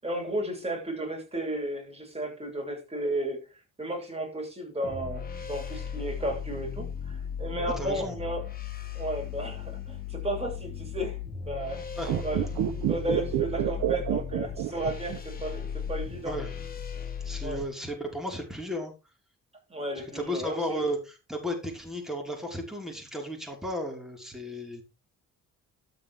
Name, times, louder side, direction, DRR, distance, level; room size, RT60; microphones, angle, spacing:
voice 1, 0.0-3.5 3.8-8.4 8.9-11.2 11.4-11.8 12.2-16.3 17.4-17.6 19.7-20.8, right 1 dB, 20° right, 7.9 m, -34 dB
sound 1, 4.8-17.6, left 7 dB, 30° left, 4.2 m, -37 dB
voice 2, 7.8-8.2 12.0-12.1 16.2-16.6 17.2-18.9 20.0-24.8, equal, ahead, 5.6 m, -34 dB
sound 2, 12.0-15.4 15.6-15.7, right 12 dB, 90° right, 1.2 m, -28 dB
13.0 x 9.4 x 3.8 m
cardioid pair, 90°, 30 cm